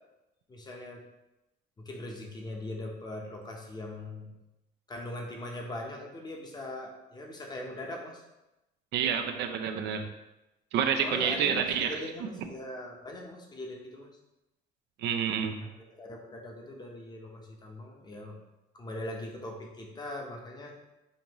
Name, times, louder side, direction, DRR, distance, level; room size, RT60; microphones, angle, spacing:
voice 1, 0.5-1.0 1.8-4.3 4.9-8.2 11.0-14.1 15.6-18.3 18.7-20.7, left 1 dB, 25° left, 1 dB, 0.8 m, -41 dB
voice 2, 8.9-10.1 10.7-12.0 15.0-15.6, right 7 dB, 75° right, 6 dB, 0.5 m, -28 dB
5.2 x 2.6 x 3.0 m, 0.96 s
cardioid pair, 115°, 18 cm